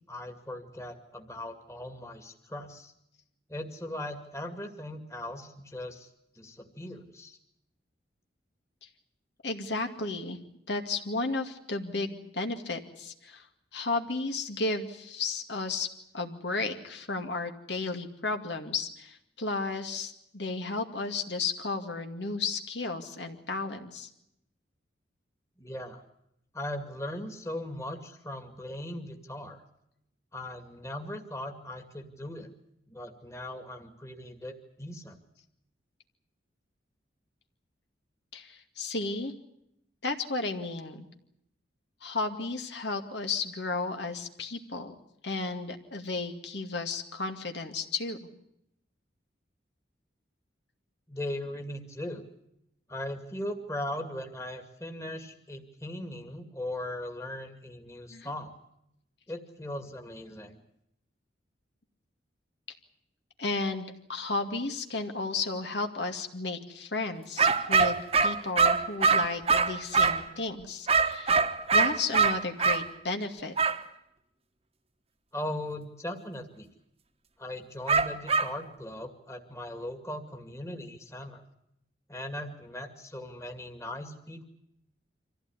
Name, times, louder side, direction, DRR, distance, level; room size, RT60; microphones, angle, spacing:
voice 1, 0.1-2.9 3.5-6.1 6.4-7.4 25.6-26.0 26.5-29.6 30.3-32.5 32.9-35.2 51.1-52.2 52.9-58.5 59.3-60.6 75.3-76.7 77.4-81.4 82.1-84.5, left 1 dB, 15° left, 5 dB, 2.2 m, -39 dB
voice 2, 9.4-10.4 10.7-13.4 13.7-15.9 16.1-24.1 38.3-39.3 40.0-41.0 42.0-45.0 45.2-48.2 58.1-58.3 63.4-71.4 71.7-73.5, left 3 dB, 70° left, 5 dB, 2.3 m, -33 dB
sound 1, 67.4-70.3 70.9-72.8 73.6-73.8 77.9-78.5, right 4 dB, 35° right, 1.4 m, -23 dB
25.5 x 15.5 x 9.8 m, 0.79 s
head